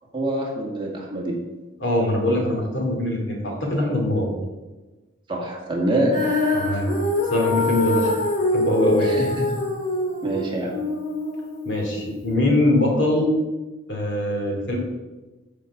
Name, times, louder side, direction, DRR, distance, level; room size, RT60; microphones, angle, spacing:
voice 1, 0.1-1.4 5.3-6.2 9.0-9.5 10.2-10.8, right 1 dB, 25° right, -2 dB, 1.8 m, -25 dB
voice 2, 1.8-4.3 6.5-6.9 7.3-8.1 8.5-9.2 11.6-13.3 13.9-14.8, left 1 dB, 60° left, 0 dB, 2.5 m, -22 dB
Female singing, 6.1-12.3, left 1 dB, 40° left, 2.2 m, -25 dB
13.0 x 5.1 x 4.7 m, 1.2 s
head